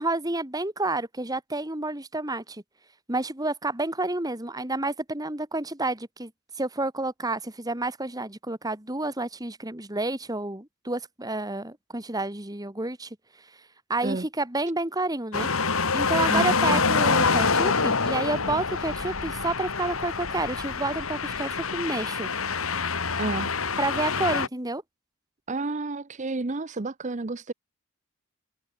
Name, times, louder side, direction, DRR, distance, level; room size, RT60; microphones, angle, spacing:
voice 1, 0.0-2.6 3.1-6.3 6.6-13.1 13.9-15.5 15.9-22.3 23.8-24.8, right 2 dB, 15° right, 2.2 m, -29 dB
sound 1, 15.3-24.5, left 4 dB, 75° left, 2.3 m, -26 dB
voice 2, 16.3-16.8 23.2-23.5 25.5-27.5, right 3 dB, 35° right, 0.7 m, -31 dB
head